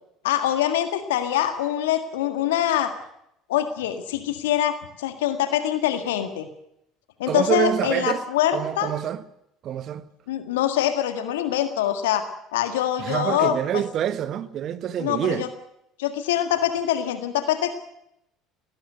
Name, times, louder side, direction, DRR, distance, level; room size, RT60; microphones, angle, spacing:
voice 1, 0.2-2.9 3.5-6.5 7.2-8.9 10.3-12.3 12.5-13.6 15.0-15.5 16.0-17.8, left 11 dB, 75° left, 1.8 m, -24 dB
voice 2, 7.2-8.2 8.5-9.2 9.6-10.0 13.0-15.4, right 10 dB, 50° right, 1.5 m, -26 dB
18.5 x 17.5 x 8.0 m
hypercardioid pair, 65°, 0 cm